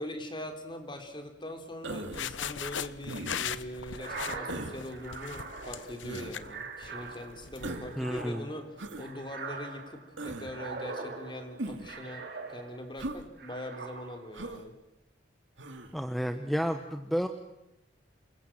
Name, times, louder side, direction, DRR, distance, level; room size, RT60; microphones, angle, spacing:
voice 1, 0.0-8.7 9.0-14.7, left 1 dB, 25° left, 5 dB, 3.7 m, -42 dB
Human voice, 1.8-2.3 3.1-3.6 4.5-4.8 6.0-6.4 7.6-8.0 8.8-9.1 10.2-10.5 11.6-11.9 13.0-13.2 14.3-14.6 15.6-15.9, right 2 dB, 90° right, 2.5 m, -39 dB
sound 1, 2.0-8.3, left 8 dB, 85° left, 0.9 m, -39 dB
sound 2, 3.9-13.0 13.4-14.4, right 4 dB, 60° right, 3.5 m, -43 dB
voice 2, 8.0-8.5 15.9-17.3, equal, ahead, 6 dB, 1.2 m, -31 dB
28.0 x 22.0 x 7.6 m, 0.90 s
head